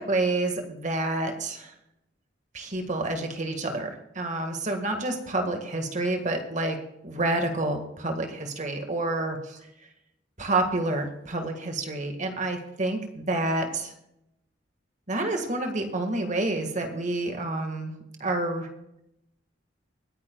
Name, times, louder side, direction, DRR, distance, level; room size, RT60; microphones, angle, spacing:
voice 1, 0.0-1.7 2.5-6.8 7.0-9.6 10.4-13.9 15.1-17.9 18.2-18.7, right 2 dB, 40° right, 5 dB, 1.8 m, -28 dB
24.5 x 9.8 x 2.3 m, 0.83 s
head